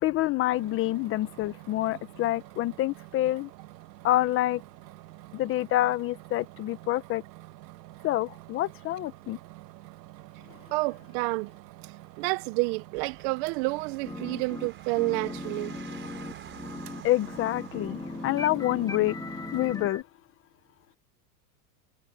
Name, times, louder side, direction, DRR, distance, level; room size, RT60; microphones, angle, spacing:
voice 1, 0.0-3.5 4.0-4.6 5.3-7.2 8.0-9.4 17.0-19.2 19.5-20.0, left 15 dB, 25° left, 0.6 m, -27 dB
sound 1, 0.5-19.7, right 17 dB, 80° right, 1.6 m, -48 dB
voice 2, 10.7-11.5 12.2-15.7, right 24 dB, 40° right, 0.5 m, -29 dB
sound 2, 13.0-19.9, right 8 dB, 25° right, 4.8 m, -51 dB
sound 3, 14.0-14.7 15.0-20.0, left 3 dB, 5° left, 2.0 m, -38 dB
supercardioid pair, 145°, 49 cm